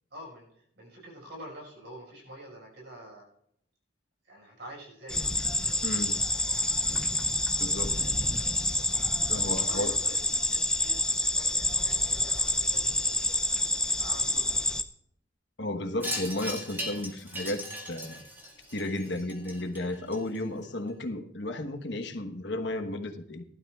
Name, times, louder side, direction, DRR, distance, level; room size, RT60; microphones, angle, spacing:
voice 1, 0.1-3.3 4.2-5.4 8.0-8.5 9.4-13.3 13.9-14.6, equal, 70° right, -2 dB, 5.4 m, -47 dB
sound 1, 5.1-14.8, left 1 dB, 5° left, 0.5 m, -28 dB
voice 2, 5.8-6.2 7.6-8.1 9.3-9.9 15.6-18.2 18.7-23.4, left 1 dB, 70° left, 6 dB, 1.2 m, -33 dB
Wind chime, 16.0-20.6, equal, 10° right, 2.1 m, -38 dB
19.0 x 12.0 x 2.4 m, 0.72 s
head